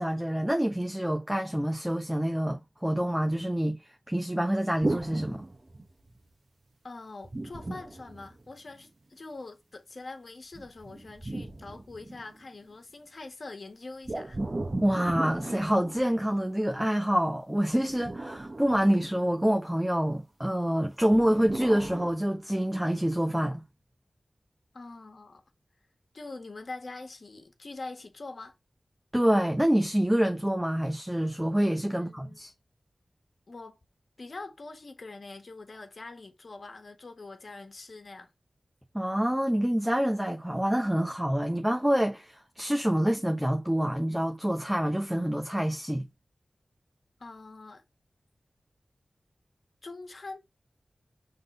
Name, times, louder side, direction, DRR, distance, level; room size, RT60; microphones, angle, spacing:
voice 1, 0.0-3.8 4.1-5.4 14.8-23.6 29.1-32.5 38.9-46.0, equal, 10° right, 1.0 m, -27 dB
sound 1, 4.8-6.2 7.2-8.8 10.5-12.5 14.0-16.6 17.7-19.6 21.1-22.1, right 2 dB, 40° right, 1.2 m, -37 dB
voice 2, 6.8-14.4 24.7-25.4 26.1-28.5 31.9-32.4 33.5-33.8 34.2-38.3 47.2-47.8 49.8-50.4, left 3 dB, 65° left, 1.7 m, -44 dB
6.0 x 3.8 x 5.5 m
cardioid pair, 45°, 0 cm